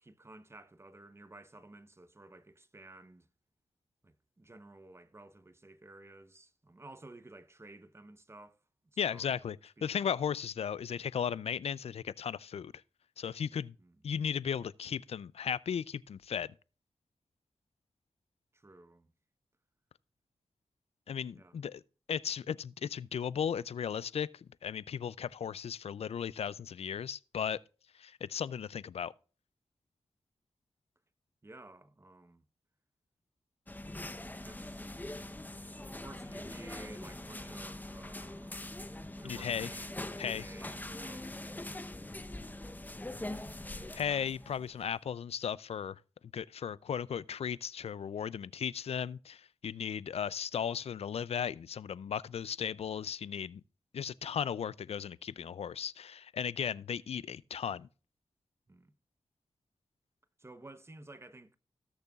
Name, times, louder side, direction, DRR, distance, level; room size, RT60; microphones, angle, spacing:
voice 1, 0.0-3.3 4.0-9.3 9.8-10.2 13.8-14.0 18.5-19.1 21.3-21.6 31.4-32.4 34.4-34.9 35.5-38.7 39.2-39.9 40.2-41.4 58.7-58.9 60.4-61.6, right 2 dB, 25° right, 0.8 m, -54 dB
voice 2, 9.0-12.7 13.2-13.8 14.0-16.5 21.1-21.8 22.1-27.6 27.9-29.1 39.2-39.7 40.2-40.4 43.9-46.0 46.3-53.6 53.9-57.9, left 8 dB, 75° left, 0.4 m, -36 dB
sound 1, 33.7-44.8, left 1 dB, 15° left, 0.8 m, -43 dB
18.5 x 6.8 x 2.4 m
cardioid pair, 60°, 11 cm